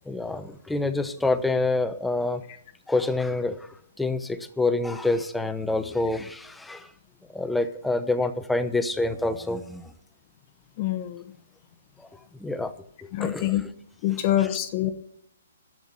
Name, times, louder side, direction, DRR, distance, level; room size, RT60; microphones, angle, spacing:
voice 1, 0.1-2.4 2.9-3.7 4.0-6.9 7.3-9.9 12.0-12.1 12.4-12.7 13.0-13.7 14.1-14.5, left 2 dB, 5° left, 10 dB, 0.9 m, -27 dB
voice 2, 10.8-11.2 13.1-13.6 14.0-14.9, left 13 dB, 40° left, 8 dB, 1.0 m, -25 dB
11.5 x 8.0 x 8.8 m, 0.71 s
hypercardioid pair, 145°, 0 cm